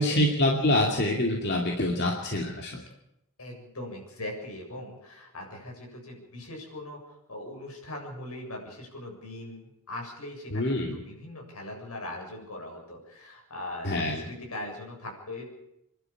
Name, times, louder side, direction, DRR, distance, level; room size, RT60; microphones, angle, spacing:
voice 1, 0.0-2.8 10.5-11.0 13.8-14.2, left 1 dB, 50° left, 0 dB, 2.5 m, -26 dB
voice 2, 3.4-15.5, left 1 dB, 80° left, 1 dB, 7.4 m, -40 dB
28.0 x 11.5 x 8.7 m, 0.82 s
head